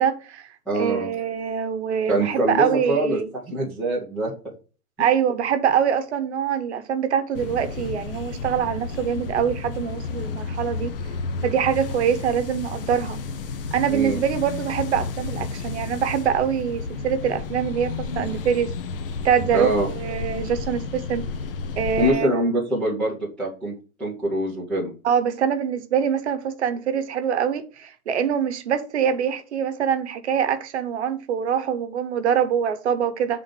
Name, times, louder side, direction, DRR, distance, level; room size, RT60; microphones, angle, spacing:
voice 1, 0.0-3.3 5.0-10.9 11.4-13.2 13.7-18.7 19.2-21.2 21.8-22.4 25.0-33.4, right 8 dB, 50° right, 1.0 m, -24 dB
voice 2, 0.7-1.1 2.1-3.2 3.5-4.5 13.9-14.2 19.5-19.9 22.0-23.7 24.0-24.9, right 1 dB, ahead, 0.6 m, -24 dB
sound 1, 7.3-22.1, left 4 dB, 40° left, 0.7 m, -32 dB
6.4 x 3.8 x 5.1 m
hypercardioid pair, 155°, 44 cm